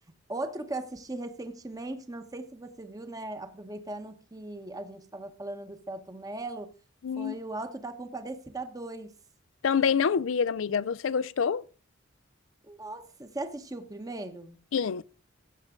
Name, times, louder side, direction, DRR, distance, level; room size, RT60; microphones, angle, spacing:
voice 1, 0.3-6.7 7.1-9.1 12.6-14.6, right 2 dB, 20° right, 1.0 m, -38 dB
voice 2, 7.0-7.4 9.6-11.6 14.7-15.0, left 6 dB, 75° left, 0.4 m, -26 dB
16.0 x 7.3 x 3.7 m
head